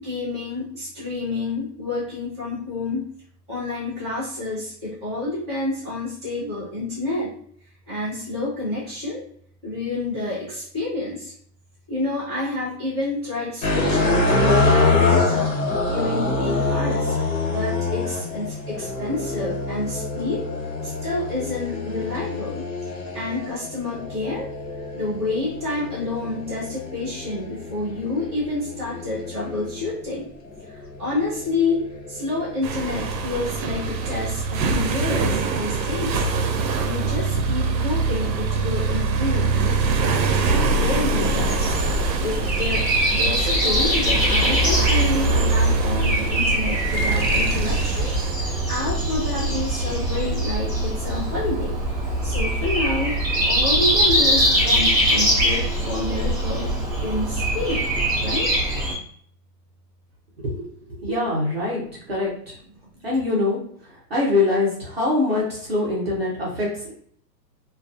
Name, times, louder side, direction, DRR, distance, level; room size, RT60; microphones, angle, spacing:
voice 1, 0.0-3.1 3.5-7.3 7.9-9.2 9.6-11.3 11.9-17.2 17.5-20.5 20.8-22.7 23.1-24.5 24.9-30.3 30.7-36.3 36.8-39.5 39.9-41.8 42.2-51.8 52.2-53.2 53.5-56.7 57.0-57.8 58.2-58.5 62.9-63.1, left 2 dB, 15° left, -13 dB, 0.5 m, -29 dB
sound 1, 13.6-29.9 30.6-33.0, left 3 dB, 80° left, 1.1 m, -25 dB
sound 2, 32.6-48.7, right 3 dB, 90° right, 0.6 m, -24 dB
Breathing, 41.2-58.9, right 1 dB, 15° right, 0.8 m, -22 dB
voice 2, 60.4-61.8 62.1-62.5 63.0-66.9, left 2 dB, 40° right, -5 dB, 0.4 m, -24 dB
2.5 x 2.2 x 2.3 m, 0.62 s
hypercardioid pair, 180°, 50 cm